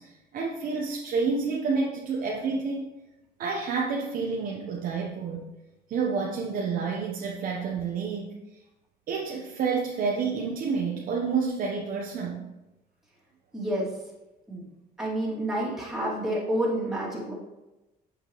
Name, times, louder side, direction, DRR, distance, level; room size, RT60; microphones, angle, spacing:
voice 1, 0.0-2.9 3.4-5.5 5.9-8.3 9.1-12.4, right 5 dB, 55° right, -1 dB, 0.9 m, -29 dB
voice 2, 13.5-13.9 14.5-14.6 15.0-17.3, right 1 dB, 5° right, -7 dB, 2.5 m, -29 dB
8.2 x 5.8 x 3.0 m, 1.0 s
cardioid pair, 110°, 17 cm